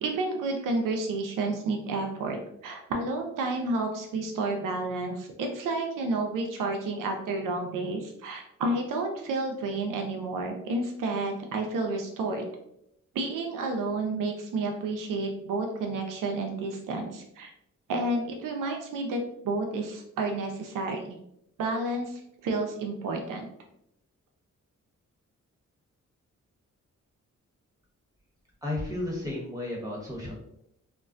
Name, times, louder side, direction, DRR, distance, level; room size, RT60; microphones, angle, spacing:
voice 1, 0.0-12.4 13.1-17.5 17.9-21.2 21.6-23.5, right 2 dB, 80° right, 3 dB, 0.5 m, -30 dB
voice 2, 28.6-30.3, left 1 dB, 10° right, -3 dB, 1.2 m, -33 dB
2.4 x 2.2 x 2.4 m, 0.77 s
cardioid pair, 60°, 32 cm